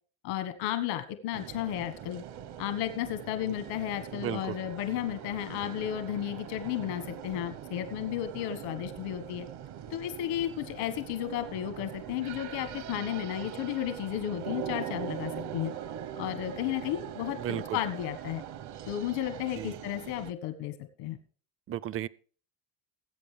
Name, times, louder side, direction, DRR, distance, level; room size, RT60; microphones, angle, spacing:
voice 1, 0.2-2.2 2.6-9.5 9.9-15.7 16.2-18.4 18.9-21.2, left 12 dB, 85° left, 1.6 m, -33 dB
sound 1, 1.3-20.3, right 9 dB, 65° right, 1.3 m, -42 dB
voice 2, 4.1-4.6 17.4-17.8 19.6-19.8 21.7-22.1, right 11 dB, 30° right, 0.5 m, -34 dB
20.5 x 8.2 x 3.4 m
cardioid pair, 105°, 43 cm